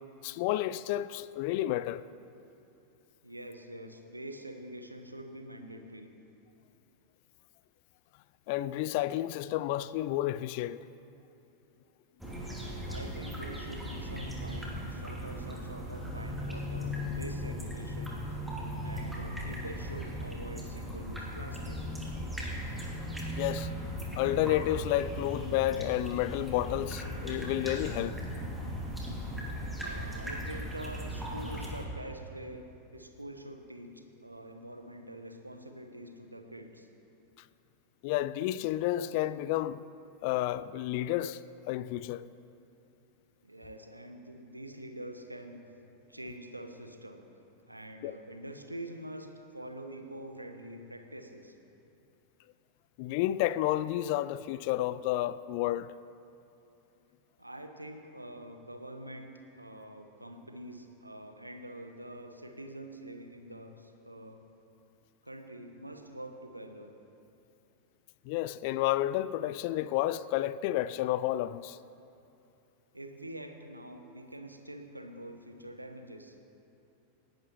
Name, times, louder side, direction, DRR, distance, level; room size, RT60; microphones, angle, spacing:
voice 1, 0.2-2.1 8.5-10.8 23.3-23.7 24.2-28.2 28.6-28.8 38.0-39.8 40.2-41.4 41.7-42.3 48.0-48.1 53.0-55.9 68.3-71.8, left 14 dB, 45° left, 0.4 m, -31 dB
voice 2, 3.2-6.1 12.6-18.2 18.8-21.8 29.8-32.6 32.9-36.9 43.4-45.6 46.1-47.2 47.7-51.5 57.4-59.3 59.6-64.4 65.2-66.9 72.9-76.3, right 1 dB, 85° right, 1.2 m, -45 dB
sound 1, 12.2-31.9, equal, 5° right, 3.0 m, -38 dB
27.5 x 11.5 x 3.1 m
figure-of-eight pair, 90°, 0 cm